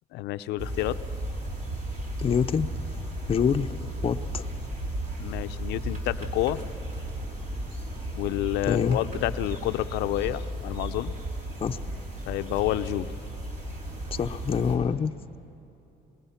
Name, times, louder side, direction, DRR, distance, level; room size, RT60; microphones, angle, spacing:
voice 1, 0.1-1.0 5.2-6.6 8.1-11.1 12.3-13.1, left 15 dB, 85° left, 12 dB, 0.6 m, -29 dB
sound 1, 0.6-14.8, right 1 dB, 50° right, 3.7 m, -34 dB
voice 2, 2.2-2.7 3.3-3.8 4.0-4.5 8.7-9.0 11.6-11.8 14.2-15.1, left 7 dB, 35° left, 7 dB, 0.7 m, -25 dB
26.0 x 20.0 x 5.8 m, 3.0 s
cardioid pair, 110°, 17 cm